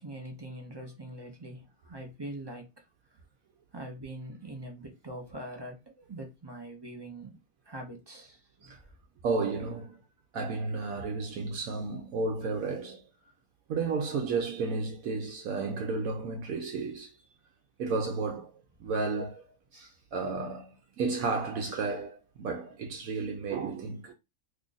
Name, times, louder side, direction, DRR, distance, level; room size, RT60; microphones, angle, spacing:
voice 1, 0.0-2.7 3.7-7.4 7.7-8.7 22.6-22.7, right 1 dB, 30° right, 0.4 m, -43 dB
voice 2, 9.2-10.0 10.3-13.0 13.7-17.1 17.8-18.5 18.8-19.4 19.7-24.1, right 4 dB, 70° right, 1.0 m, -32 dB
3.0 x 2.4 x 3.8 m
omnidirectional pair, 1.6 m